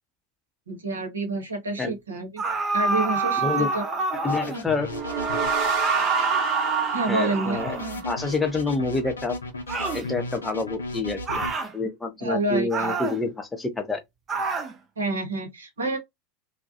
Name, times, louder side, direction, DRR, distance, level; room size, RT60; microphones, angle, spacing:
voice 1, 0.7-2.4 2.7-3.8 6.9-7.6 12.2-12.9 15.0-16.0, right 2 dB, 85° right, 0.8 m, -28 dB
sound 1, 2.4-4.7 5.8-8.1 9.7-10.1 11.3-11.7 12.7-13.2 14.3-14.7, right 3 dB, 30° right, 0.6 m, -28 dB
voice 2, 4.2-4.9 7.1-7.7 8.0-9.3 9.9-14.0, left 3 dB, 15° left, 0.7 m, -28 dB
sound 2, 4.3-5.5 7.5-11.5, left 2 dB, 85° left, 0.5 m, -34 dB
sound 3, 4.8-8.3, right 5 dB, 45° right, 0.9 m, -27 dB
2.2 x 2.0 x 2.7 m
figure-of-eight pair, 85°, 0 cm